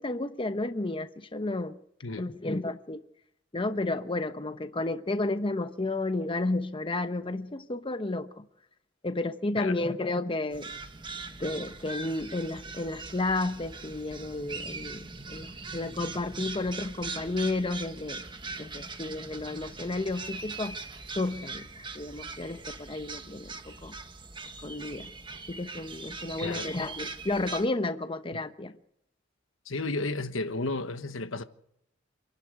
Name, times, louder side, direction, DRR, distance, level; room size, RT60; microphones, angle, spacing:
voice 1, 0.0-1.8 2.1-3.0 3.5-8.4 9.0-10.7 11.4-15.0 15.3-18.2 18.6-20.8 21.1-21.7 21.9-23.9 24.6-25.1 25.5-28.7, left 2 dB, 25° left, 0.9 m, -32 dB
sound 1, 10.5-27.7, right 3 dB, 25° right, 1.3 m, -41 dB
voice 2, 26.4-26.7 29.7-31.4, left 2 dB, 80° left, 1.3 m, -32 dB
27.0 x 11.5 x 8.3 m
head